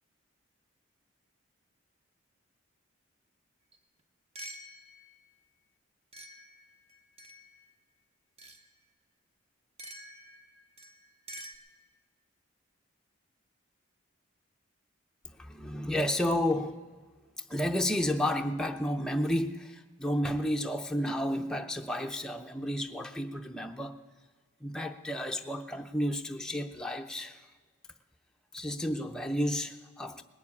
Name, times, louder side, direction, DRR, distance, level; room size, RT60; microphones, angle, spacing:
sound 1, 3.7-3.8 4.4-5.2 6.1-7.7 8.4-8.7 9.8-11.6, right 1 dB, 30° right, 0.9 m, -48 dB
voice 1, 15.2-16.9 17.4-24.0 24.6-27.5 28.5-30.2, left 1 dB, 5° left, 0.5 m, -32 dB
19.5 x 7.2 x 8.4 m
head